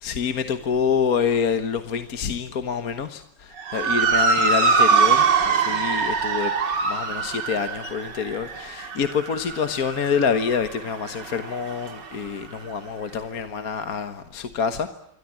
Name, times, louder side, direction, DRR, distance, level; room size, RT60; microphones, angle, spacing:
voice 1, 0.0-6.5 6.8-14.9, left 6 dB, 55° left, 1.7 m, -27 dB
Motor vehicle (road) / Siren, 3.6-12.2, right 5 dB, 75° right, 2.7 m, -23 dB
27.5 x 23.0 x 8.9 m
omnidirectional pair, 1.9 m